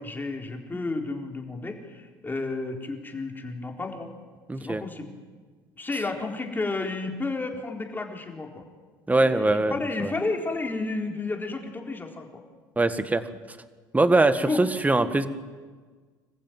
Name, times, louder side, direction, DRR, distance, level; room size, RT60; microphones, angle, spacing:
voice 1, 0.0-4.1 4.6-5.1 5.7-8.6 9.1-12.4 14.4-14.6, left 3 dB, 20° left, 2 dB, 4.1 m, -32 dB
voice 2, 4.5-4.8 9.1-10.1 12.8-13.2 13.9-15.3, right 2 dB, 15° right, 11 dB, 1.7 m, -22 dB
26.0 x 15.0 x 9.3 m, 1.5 s
hypercardioid pair, 75°, 10 cm